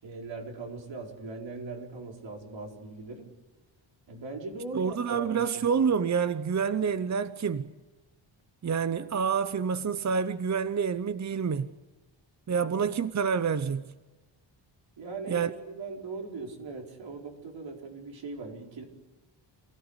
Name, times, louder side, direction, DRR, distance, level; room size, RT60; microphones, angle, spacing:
voice 1, 0.0-3.3 4.1-5.7 12.6-12.7 15.0-18.8, right 3 dB, 70° right, 4.8 m, -40 dB
voice 2, 4.7-7.7 8.6-11.7 12.5-13.9 15.3-15.5, right 6 dB, 35° right, 0.8 m, -28 dB
28.0 x 17.0 x 8.2 m
wide cardioid pair, 125°, 46 cm